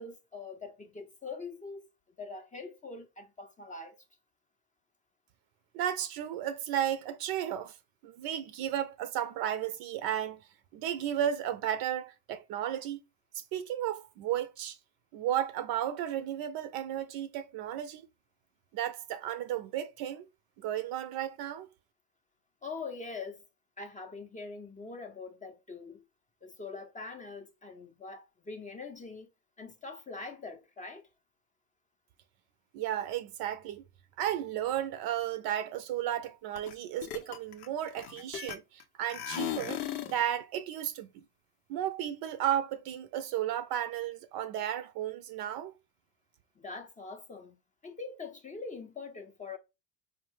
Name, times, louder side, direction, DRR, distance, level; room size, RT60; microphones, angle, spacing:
voice 1, 0.0-1.8 2.2-4.0 22.6-23.4 23.8-26.0 26.4-29.3 29.6-31.0 46.6-49.6, left 4 dB, 15° left, 0.5 m, -43 dB
voice 2, 5.7-7.8 8.0-10.4 10.7-13.0 13.3-14.8 15.1-18.1 18.7-20.2 20.6-21.7 32.7-33.8 34.2-39.8 40.1-41.2 41.7-45.7, right 11 dB, 50° right, 0.6 m, -34 dB
sound 1, 36.6-36.7 37.0-38.8 39.1-40.2, left 11 dB, 90° left, 0.7 m, -37 dB
4.6 x 2.1 x 3.1 m
hypercardioid pair, 75°, 47 cm